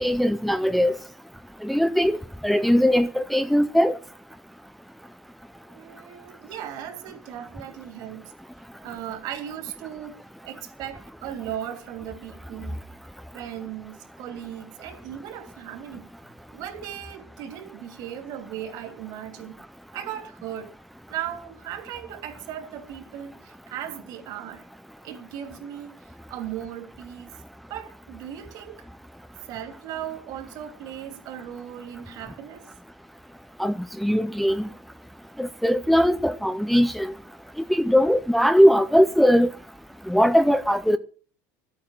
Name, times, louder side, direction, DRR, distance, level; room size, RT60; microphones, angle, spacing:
voice 1, 0.0-1.0 1.6-2.2 2.4-3.9 33.6-33.7 34.0-34.6 35.4-37.1 37.7-39.5 40.1-41.0, equal, ahead, 0.5 m, -20 dB
voice 2, 5.7-8.3 8.8-12.8 13.3-16.1 16.5-19.6 19.9-20.7 21.1-24.6 25.0-25.9 26.3-27.3 27.7-28.9 29.5-32.7, right 10 dB, 55° right, 3.0 m, -37 dB
12.0 x 8.8 x 7.4 m
supercardioid pair, 135°, 8 cm